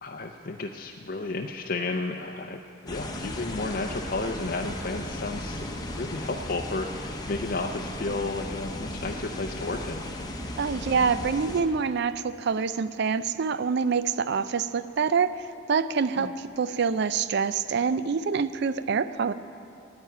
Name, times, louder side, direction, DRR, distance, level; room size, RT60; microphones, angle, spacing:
voice 1, 0.0-5.6 6.0-10.0 16.2-16.3, left 3 dB, 45° left, 2 dB, 0.5 m, -32 dB
sound 1, 2.9-11.6, left 1 dB, 20° left, 0.9 m, -36 dB
voice 2, 10.6-15.4 15.7-19.3, right 5 dB, 55° right, 14 dB, 0.4 m, -26 dB
10.5 x 8.8 x 9.1 m, 2.6 s
head